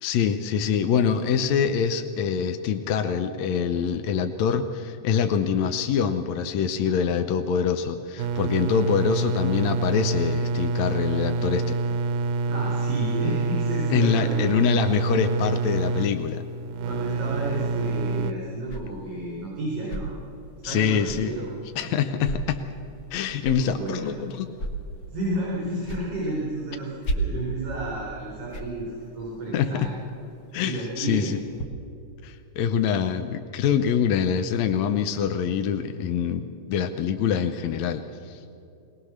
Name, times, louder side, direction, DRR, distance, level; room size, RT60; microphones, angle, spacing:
voice 1, 0.0-11.8 13.9-16.4 20.6-21.3 21.8-22.6 23.1-24.6 29.5-29.9 30.5-31.4 32.2-38.4, left 7 dB, 75° left, 8 dB, 1.9 m, -25 dB
sound 1, 8.2-18.3, right 3 dB, 85° right, 2.0 m, -27 dB
voice 2, 12.5-14.6 16.8-20.1 20.6-21.5 21.8-22.0 23.6-24.1 25.1-29.9 30.6-31.3, right 2 dB, 55° right, -6 dB, 5.5 m, -31 dB
sound 2, 17.6-31.6, right 1 dB, 45° left, 1.6 m, -37 dB
21.0 x 19.5 x 6.5 m, 2.7 s
omnidirectional pair, 3.4 m